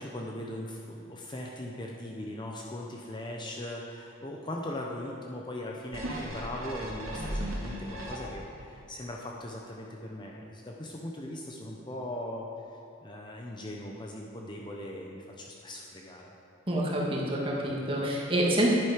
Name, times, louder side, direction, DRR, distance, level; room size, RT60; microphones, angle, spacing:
voice 1, 0.0-12.5 13.0-16.3, left 1 dB, 20° left, -1 dB, 0.7 m, -39 dB
sound 1, 5.9-8.6 9.1-9.2, right 1 dB, 85° right, 2.0 m, -36 dB
voice 2, 16.7-18.7, right 1 dB, 25° right, -3 dB, 1.6 m, -27 dB
11.0 x 9.1 x 5.0 m, 2.7 s
head